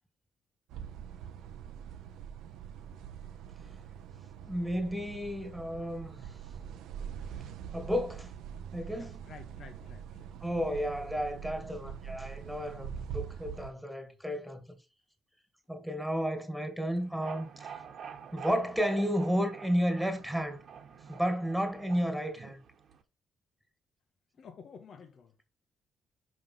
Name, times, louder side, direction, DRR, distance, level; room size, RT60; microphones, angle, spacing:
sound 1, 0.7-13.7, right 8 dB, 90° right, 0.7 m, -44 dB
voice 1, 4.4-6.2 7.7-8.3 8.7-9.2 10.4-14.8 15.7-17.7 18.3-20.6 21.1-22.6, equal, 5° right, 2.1 m, -32 dB
voice 2, 9.0-10.3 14.0-14.1 24.4-25.3, left 6 dB, 60° left, 1.1 m, -51 dB
sound 2, 16.9-23.0, right 7 dB, 60° right, 1.2 m, -48 dB
5.4 x 5.4 x 5.6 m
cardioid pair, 90°, 0 cm